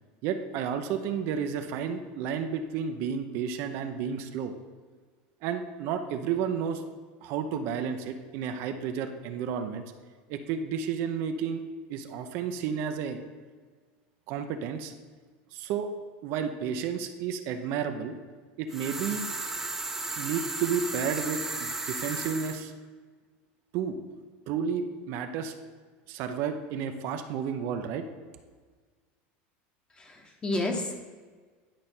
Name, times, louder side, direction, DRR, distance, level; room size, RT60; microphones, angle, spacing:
voice 1, 0.2-4.6 5.4-6.8 7.2-9.8 10.3-11.6 11.9-13.2 14.3-14.9 15.5-15.9 16.2-18.1 18.6-19.2 20.2-22.7 23.7-24.0 24.5-25.5 26.1-28.0, right 7 dB, 60° right, 7 dB, 0.7 m, -31 dB
sound 1, 18.7-22.6, right 2 dB, 5° right, 0.7 m, -34 dB
voice 2, 29.9-30.9, left 2 dB, 20° left, 3 dB, 1.1 m, -31 dB
10.5 x 5.2 x 4.4 m, 1.5 s
supercardioid pair, 135°, 5 cm